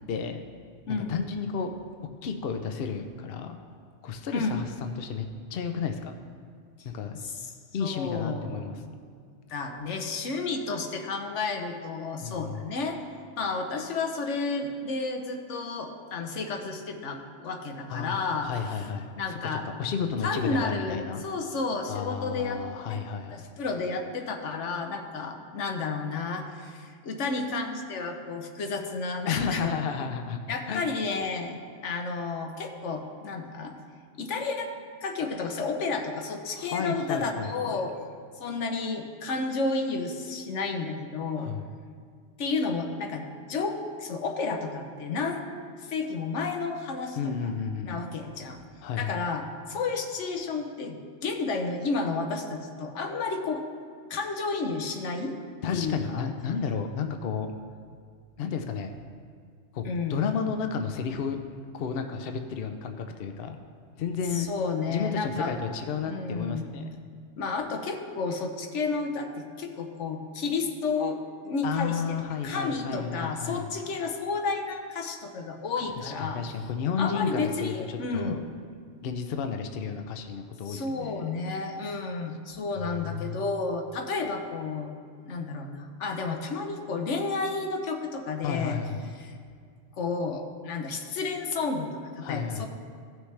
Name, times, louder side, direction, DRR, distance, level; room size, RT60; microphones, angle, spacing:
voice 1, 0.1-0.4 0.9-1.7 2.2-3.6 4.0-5.3 5.5-6.1 6.8-7.2 7.7-8.8 12.2-12.7 17.9-18.2 18.4-19.4 19.6-21.2 21.9-23.4 29.3-30.4 30.7-30.9 36.5-37.8 41.4-41.7 47.2-48.0 48.8-49.2 55.6-57.5 58.4-58.9 59.7-59.8 60.1-61.4 61.7-63.6 64.0-64.5 64.9-66.9 71.6-73.7 76.0-78.4 79.0-81.3 82.8-83.4 88.4-89.0 92.2-92.7, left 6 dB, 60° left, 6 dB, 0.8 m, -32 dB
voice 2, 0.9-1.2 4.3-4.6 7.2-7.3 7.8-8.9 9.5-13.0 13.4-18.9 19.2-19.6 20.2-22.6 22.9-23.0 23.3-29.8 30.5-31.6 31.8-33.7 34.2-34.7 35.0-37.9 38.4-41.5 42.4-45.4 45.8-47.5 47.8-48.6 49.0-53.6 54.1-55.4 55.7-56.3 59.8-60.2 64.3-65.5 66.0-66.8 67.4-72.2 72.4-76.4 77.0-78.4 80.7-84.9 85.2-88.8 89.2-89.4 90.0-92.7, left 4 dB, 80° left, 4 dB, 1.2 m, -31 dB
16.0 x 6.3 x 3.3 m, 2.1 s
omnidirectional pair, 1.2 m